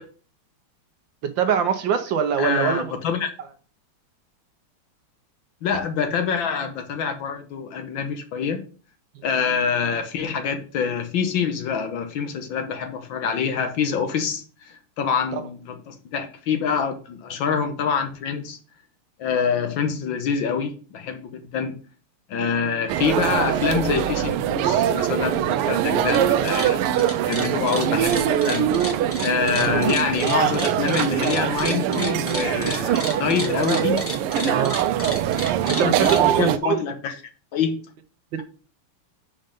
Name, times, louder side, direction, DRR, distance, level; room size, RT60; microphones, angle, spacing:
voice 1, 1.4-2.9 29.6-29.7 34.5-34.9 35.7-36.8 38.3-38.4, right 8 dB, 65° right, 1.4 m, -23 dB
voice 2, 2.4-3.3 5.6-8.6 9.2-18.6 19.2-21.7 22.3-26.9 27.2-28.7 29.2-34.0 34.3-35.2 35.7-37.2 37.5-37.8, left 6 dB, 70° left, 1.6 m, -26 dB
sound 1, 22.9-36.6, right 10 dB, 85° right, 1.5 m, -23 dB
sound 2, 25.9-26.2 26.5-36.2, left 1 dB, 10° left, 0.6 m, -32 dB
5.4 x 5.3 x 5.2 m
omnidirectional pair, 2.4 m